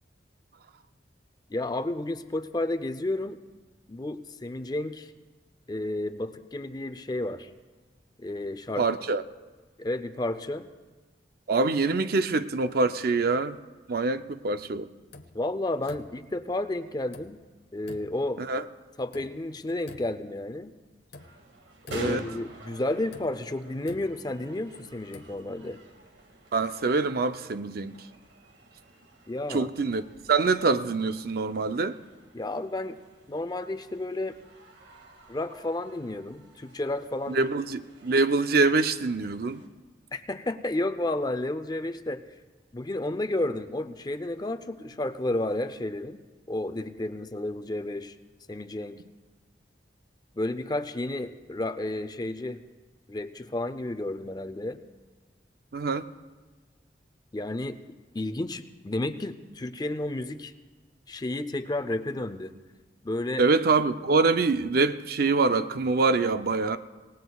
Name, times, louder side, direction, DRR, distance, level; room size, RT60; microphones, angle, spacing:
voice 1, 1.5-3.4 3.9-5.1 5.7-7.5 8.2-8.9 9.8-10.7 15.3-17.4 17.7-18.4 19.0-20.7 21.9-25.8 29.3-29.7 32.3-33.0 33.3-34.4 35.3-37.5 40.1-42.2 42.7-46.2 46.5-48.1 48.5-49.0 50.3-52.6 53.1-54.8 57.3-60.5 61.1-62.5 63.0-63.4, left 1 dB, 25° left, 0.5 m, -31 dB
voice 2, 8.8-9.2 11.5-13.6 13.9-14.9 18.4-18.6 22.0-22.2 26.5-27.9 29.5-30.0 30.3-32.0 37.3-39.6 55.7-56.1 63.4-66.8, right 3 dB, 55° right, 0.5 m, -25 dB
sound 1, 15.1-15.5 15.9-16.4 17.1-17.5 17.9-18.3 19.1-19.5 19.9-20.4 21.1-21.5 21.9-22.4 23.1-24.6 25.0-25.4, left 2 dB, 65° left, 0.8 m, -48 dB
sound 2, 21.2-39.7, right 1 dB, 90° right, 2.0 m, -49 dB
27.0 x 18.0 x 2.3 m
head